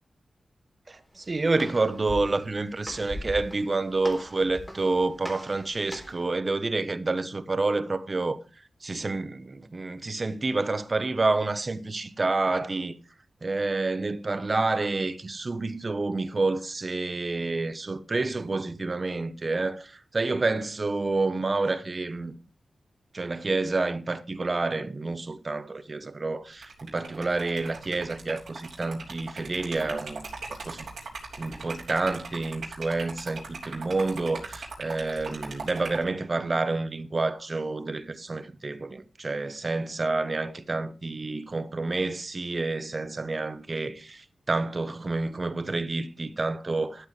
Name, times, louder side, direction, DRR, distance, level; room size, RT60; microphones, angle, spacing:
Walk footsteps, 0.9-6.3, equal, 10° left, 3.8 m, -41 dB
voice 1, 0.9-8.4 8.8-13.0 13.4-22.3 23.1-30.2 30.5-30.9 31.4-47.1, right 3 dB, 40° right, 1.0 m, -29 dB
Liquid, 26.5-36.1, right 4 dB, 85° right, 3.5 m, -40 dB
13.0 x 8.0 x 3.3 m
wide cardioid pair, 80°, 0 cm